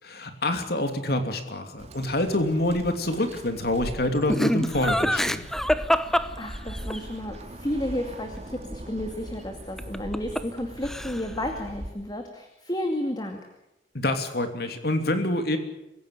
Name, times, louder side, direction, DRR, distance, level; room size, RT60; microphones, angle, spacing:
voice 1, 0.0-5.5 13.9-15.6, left 1 dB, 60° left, 7 dB, 3.0 m, -26 dB
Bird, 1.8-11.9, right 1 dB, 40° right, 2.4 m, -40 dB
Laughter, 4.3-7.0 9.8-10.6 10.8-11.4, equal, 5° left, 0.9 m, -25 dB
voice 2, 6.1-13.4, left 1 dB, 25° left, 4 dB, 2.4 m, -32 dB
26.0 x 16.0 x 8.5 m, 0.91 s
head